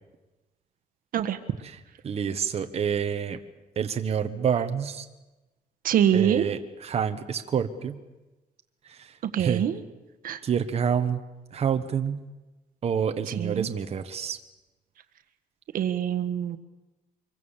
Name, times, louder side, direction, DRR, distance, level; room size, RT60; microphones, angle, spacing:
voice 1, 2.0-3.4 3.7-5.1 6.1-8.0 8.9-9.6 10.4-11.2 11.5-12.2 12.8-14.4, right 7 dB, 45° right, 7 dB, 1.4 m, -28 dB
voice 2, 5.8-6.5 9.3-9.8 10.2-10.4 13.4-13.7 15.7-16.6, right 9 dB, 70° right, 9 dB, 1.5 m, -24 dB
25.0 x 23.5 x 7.4 m, 1.1 s
cardioid pair, 135°, 15 cm